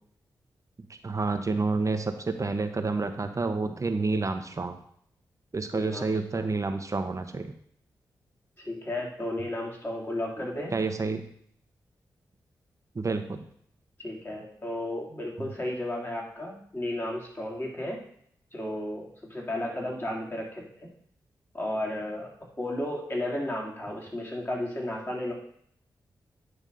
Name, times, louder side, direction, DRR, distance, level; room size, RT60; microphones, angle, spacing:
voice 1, 0.9-4.8 5.5-7.5 10.7-11.2 12.9-13.4 15.4-15.5, right 3 dB, 40° right, 8 dB, 0.9 m, -29 dB
voice 2, 5.7-6.5 8.6-10.7 14.0-18.0 18.5-20.9 21.5-22.3 22.6-25.3, left 1 dB, 25° left, -2 dB, 2.9 m, -33 dB
9.6 x 3.5 x 5.3 m, 0.65 s
supercardioid pair, 45°, 8 cm